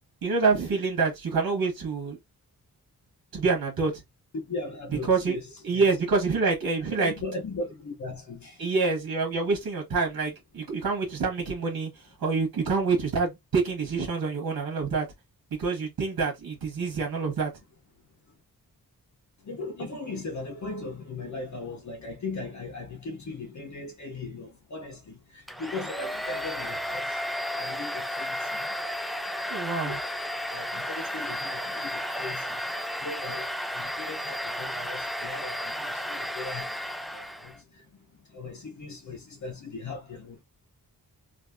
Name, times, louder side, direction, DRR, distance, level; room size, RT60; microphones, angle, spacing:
voice 1, 0.2-2.2 3.3-4.0 5.1-5.4 5.6-7.1 8.6-11.9 12.2-15.1 15.6-17.5 29.5-30.0, right 4 dB, 70° right, 1.8 m, -26 dB
voice 2, 4.3-5.9 6.9-8.7 19.4-27.2 27.5-28.8 29.2-30.0 30.5-40.4, left 3 dB, 50° left, 1.1 m, -39 dB
Domestic sounds home sounds, 25.5-37.6, equal, ahead, 0.3 m, -33 dB
3.4 x 2.9 x 2.8 m
wide cardioid pair, 115°, 36 cm